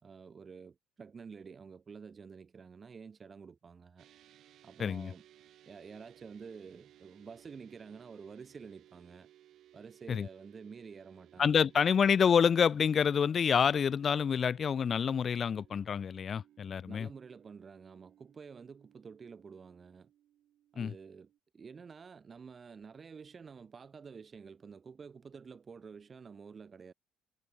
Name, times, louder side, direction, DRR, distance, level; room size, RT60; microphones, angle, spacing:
voice 1, 0.0-4.1 4.6-5.2 5.6-9.3 9.7-11.7 16.9-20.1 20.7-26.9, right 5 dB, 30° right, 4.6 m, -50 dB
sound 1, 4.0-21.4, right 12 dB, 60° right, 4.2 m, -62 dB
voice 2, 4.8-5.1 10.1-10.3 11.4-17.1 20.8-20.9, left 7 dB, 40° left, 0.3 m, -27 dB
cardioid pair, 95°, 0 cm